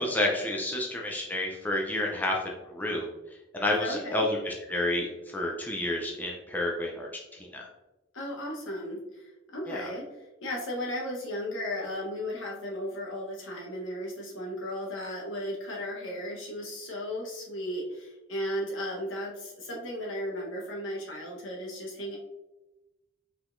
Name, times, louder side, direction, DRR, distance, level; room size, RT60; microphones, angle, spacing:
voice 1, 0.0-2.4 2.7-3.1 3.5-7.7 9.7-9.8, left 1 dB, 10° left, -2 dB, 0.5 m, -30 dB
voice 2, 3.8-4.2 8.1-10.1 10.4-22.2, equal, 80° left, -1 dB, 1.2 m, -35 dB
4.7 x 3.8 x 2.6 m, 1.0 s
head